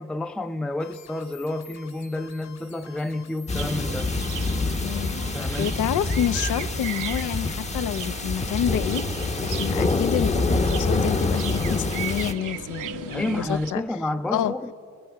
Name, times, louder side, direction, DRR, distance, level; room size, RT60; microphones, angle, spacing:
voice 1, 0.0-4.1 5.3-5.8 13.1-14.7, left 1 dB, 5° left, 0.5 m, -30 dB
sound 1, 0.8-7.6, left 7 dB, 65° left, 4.6 m, -49 dB
sound 2, 3.5-12.3, left 3 dB, 20° left, 0.9 m, -26 dB
sound 3, 3.6-13.7, right 9 dB, 85° right, 1.0 m, -37 dB
voice 2, 4.8-13.8 14.3-14.5, left 10 dB, 80° left, 0.8 m, -28 dB
29.5 x 21.0 x 5.9 m
cardioid pair, 90°, 30 cm